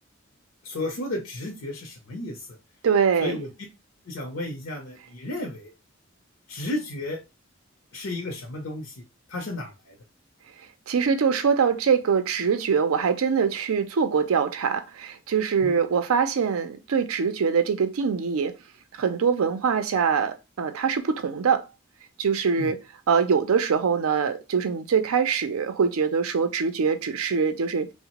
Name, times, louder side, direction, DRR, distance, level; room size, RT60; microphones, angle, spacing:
voice 1, 0.6-2.6 3.2-3.5 4.1-5.7 6.5-7.2 7.9-9.0 9.3-10.0 15.6-15.8 22.6-22.7, left 2 dB, 75° left, 0.6 m, -33 dB
voice 2, 2.8-3.4 10.9-18.5 19.0-21.7 22.2-22.8 23.1-27.9, right 6 dB, 90° right, 0.4 m, -23 dB
2.8 x 2.0 x 2.9 m
head